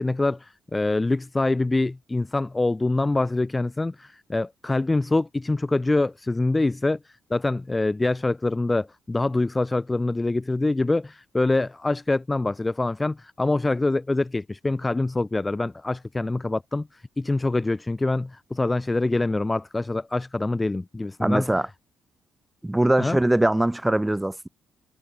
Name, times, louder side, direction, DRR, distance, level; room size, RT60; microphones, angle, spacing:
voice 1, 0.0-21.5 23.0-23.2, left 2 dB, 15° left, 5.1 m, -25 dB
voice 2, 21.2-21.7 22.6-24.5, right 1 dB, 10° right, 3.5 m, -22 dB
cardioid pair, 90°, 0 cm